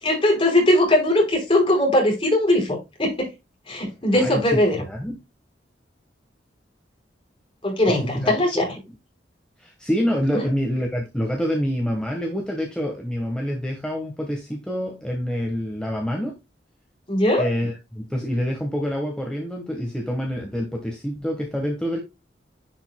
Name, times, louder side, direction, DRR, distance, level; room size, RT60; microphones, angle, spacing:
voice 1, 0.0-3.3 3.7-4.8 7.6-8.7 10.3-10.4 17.1-17.5, left 1 dB, 30° left, 4.6 m, -20 dB
voice 2, 4.1-5.2 7.9-8.7 9.6-16.4 17.4-22.0, equal, 5° left, 1.4 m, -27 dB
10.5 x 5.4 x 2.3 m
head